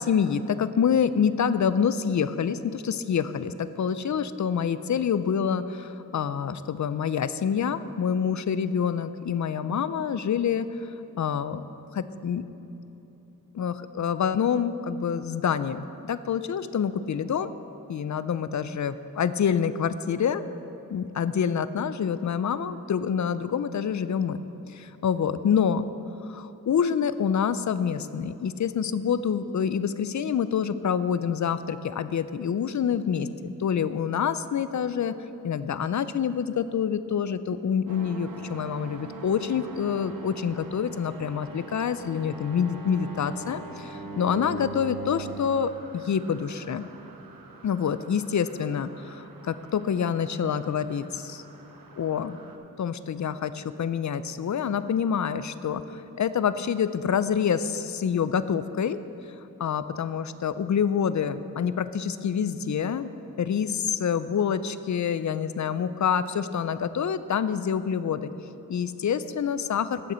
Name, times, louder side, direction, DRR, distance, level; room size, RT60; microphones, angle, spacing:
voice 1, 0.0-11.7 11.9-12.4 13.5-17.5 17.9-20.4 20.9-24.4 24.7-25.9 26.3-35.2 35.4-46.9 47.6-51.4 52.0-52.4 52.8-59.0 59.6-63.1 63.4-68.3 68.7-70.1, left 7 dB, 60° left, 13 dB, 0.4 m, -27 dB
sound 1, 37.9-52.6, right 3 dB, 85° right, 0.9 m, -43 dB
15.0 x 6.5 x 4.3 m, 3.0 s
wide cardioid pair, 95°, 34 cm